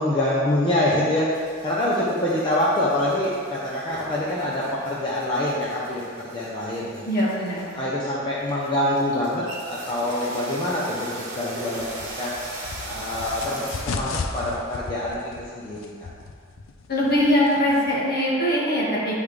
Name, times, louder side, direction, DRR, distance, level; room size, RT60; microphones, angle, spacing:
voice 1, 0.0-7.0 7.7-11.9 12.2-12.3 12.9-15.9, left 1 dB, 25° left, -7 dB, 0.7 m, -25 dB
sound 1, 1.3-13.8, right 1 dB, 40° right, 1.5 m, -39 dB
voice 2, 7.0-7.7 16.9-19.2, equal, 50° left, -6 dB, 1.6 m, -22 dB
sound 2, 11.8-17.9, left 4 dB, 80° left, 0.5 m, -36 dB
10.0 x 3.6 x 3.3 m, 2.1 s
head